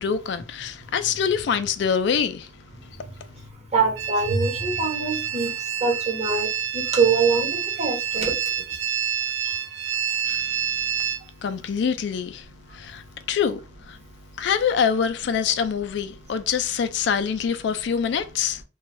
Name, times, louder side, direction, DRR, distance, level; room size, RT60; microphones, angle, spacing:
voice 1, 0.0-2.5 10.3-10.4 11.4-12.4 12.7-14.0 14.4-18.6, left 7 dB, 65° left, 0.3 m, -25 dB
voice 2, 3.7-5.5 5.8-6.5 6.7-7.5 7.8-8.3, right 4 dB, 35° right, 1.0 m, -23 dB
sound 1, 4.0-11.2, right 8 dB, 85° right, 0.5 m, -28 dB
2.5 x 2.3 x 3.0 m
head